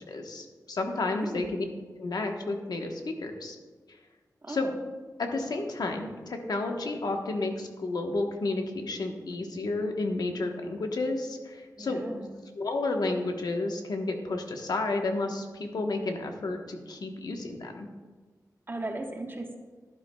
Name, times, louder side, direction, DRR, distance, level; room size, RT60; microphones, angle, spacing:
voice 1, 0.1-1.6 2.0-3.6 4.5-4.7 5.2-12.0 12.5-17.9, left 2 dB, 80° left, 3 dB, 1.1 m, -31 dB
voice 2, 1.1-1.5 4.4-4.7 11.8-12.4 18.7-19.6, right 2 dB, 30° right, 2 dB, 1.2 m, -37 dB
11.5 x 10.5 x 2.3 m, 1.4 s
wide cardioid pair, 75°, 7 cm